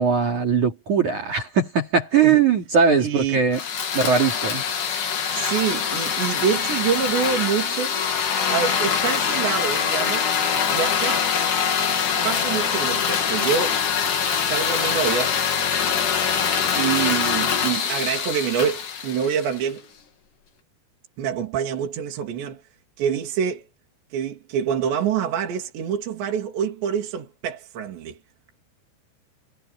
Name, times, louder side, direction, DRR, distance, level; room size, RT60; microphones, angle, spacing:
voice 1, 0.0-3.6 3.9-4.6, right 6 dB, 45° right, 3.6 m, -20 dB
voice 2, 3.0-3.5 5.3-8.0 8.5-11.3 12.2-13.8 14.5-15.4 16.8-19.9 21.2-22.6 23.0-23.7 24.1-28.2, right 8 dB, 65° right, 5.3 m, -26 dB
sound 1, 3.5-19.7, left 7 dB, 50° left, 3.6 m, -24 dB
omnidirectional pair, 5.4 m